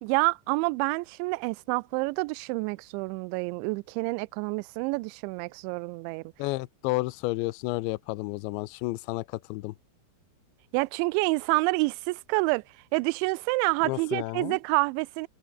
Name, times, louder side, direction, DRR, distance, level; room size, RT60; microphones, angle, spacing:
voice 1, 0.0-6.2 10.7-12.6 12.9-15.3, right 27 dB, 85° right, 2.6 m, -28 dB
voice 2, 6.4-9.2 9.5-9.7 13.8-14.6, left 22 dB, 90° left, 2.6 m, -31 dB
omnidirectional pair, 5.9 m